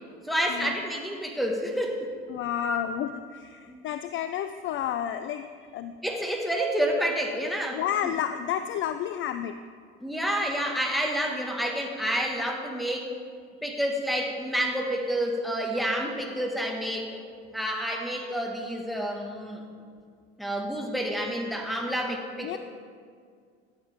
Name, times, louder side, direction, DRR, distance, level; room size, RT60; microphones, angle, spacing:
voice 1, 0.2-2.1 2.6-2.8 3.7-3.8 6.0-7.8 10.0-13.1 13.6-17.2 17.5-19.6 20.4-22.6, equal, ahead, 1 dB, 1.7 m, -29 dB
voice 2, 2.3-5.9 7.7-9.6 22.4-22.6, left 10 dB, 40° left, 10 dB, 0.4 m, -31 dB
13.5 x 8.2 x 3.6 m, 2.1 s
hypercardioid pair, 65°, 33 cm